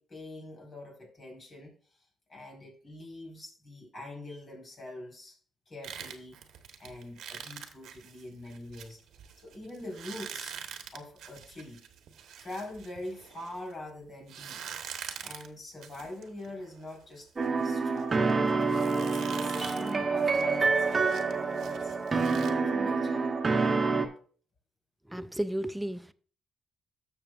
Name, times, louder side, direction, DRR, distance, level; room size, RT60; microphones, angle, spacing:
voice 1, 0.0-1.7 2.3-5.4 5.7-6.4 6.8-9.0 9.4-10.6 10.9-11.8 12.4-14.6 15.2-17.3 17.6-18.4 18.9-23.3, left 1 dB, 40° left, 4.6 m, -44 dB
sound 1, 5.8-13.8 14.3-22.5, right 8 dB, 80° right, 1.3 m, -45 dB
sound 2, 17.4-24.1, right 4 dB, 30° right, 1.3 m, -27 dB
voice 2, 25.1-26.1, right 1 dB, 5° right, 0.5 m, -33 dB
13.0 x 7.1 x 2.5 m
cardioid pair, 90°, 0 cm